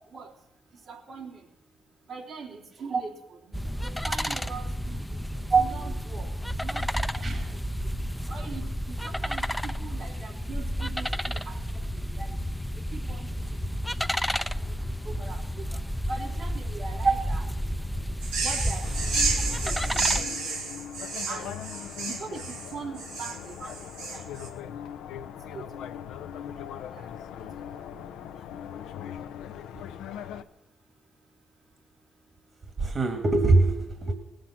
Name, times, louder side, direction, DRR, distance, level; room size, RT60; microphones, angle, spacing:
voice 1, 0.9-1.5 2.1-5.2 5.6-6.3 6.6-7.4 8.3-11.6 12.1-12.3 12.9-13.6 13.9-14.0 14.3-14.4 15.0-15.8 16.1-17.4 18.4-19.1 19.5-19.7 21.3-21.6 22.0-24.3 25.5-26.0 26.4-26.5 26.9-27.1 27.4-27.5 27.9-28.0, right 4 dB, 70° right, -1 dB, 2.8 m, -42 dB
sound 1, 3.5-20.2, equal, 5° left, 0.6 m, -31 dB
voice 2, 7.2-7.5 17.0-17.1 32.8-34.1, right 3 dB, 45° right, 5 dB, 2.1 m, -22 dB
sound 2, 18.2-24.5, right 4 dB, 90° right, 2.2 m, -31 dB
sound 3, 18.8-30.4, left 9 dB, 80° left, 0.6 m, -40 dB
19.0 x 7.6 x 7.3 m, 0.88 s
hypercardioid pair, 45°, 0 cm